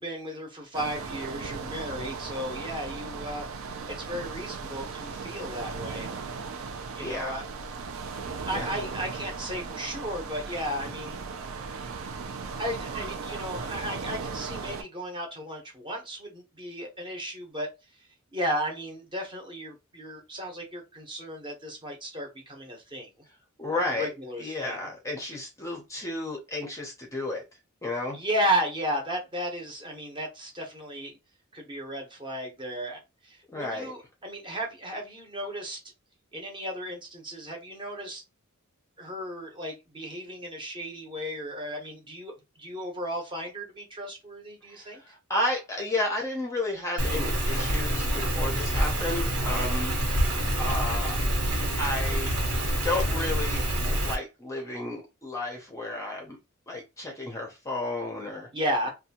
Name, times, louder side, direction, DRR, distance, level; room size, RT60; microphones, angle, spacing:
voice 1, 0.0-3.5 4.0-6.2 7.0-7.4 8.4-11.2 12.5-17.7 18.3-23.1 23.7-24.9 28.1-31.2 31.5-35.8 36.3-38.2 39.0-45.0 48.8-48.9 58.5-58.9, equal, 20° right, 0.8 m, -34 dB
sound 1, 0.7-14.8, right 5 dB, 65° right, 0.5 m, -37 dB
voice 2, 7.0-7.3 8.1-8.7 23.6-24.1 24.4-27.4 27.8-28.2 33.5-33.9 44.7-50.2 50.6-51.2 51.8-52.4 52.8-56.4 56.7-58.5, left 2 dB, 15° left, 0.6 m, -32 dB
Rain, 47.0-54.1, equal, 85° right, 1.2 m, -27 dB
2.6 x 2.3 x 2.8 m
head